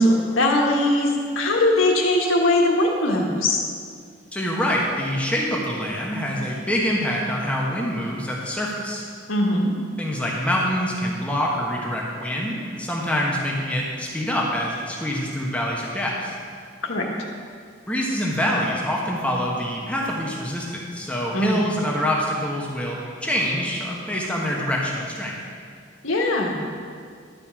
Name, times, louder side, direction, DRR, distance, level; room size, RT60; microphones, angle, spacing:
voice 1, 0.0-3.6 9.3-9.7 16.8-17.0 21.3-21.7 26.0-26.6, left 1 dB, 85° left, -1 dB, 1.5 m, -20 dB
voice 2, 4.3-9.0 10.0-16.3 17.9-25.4, equal, 5° left, -3 dB, 1.2 m, -25 dB
12.0 x 5.4 x 7.5 m, 2.1 s
head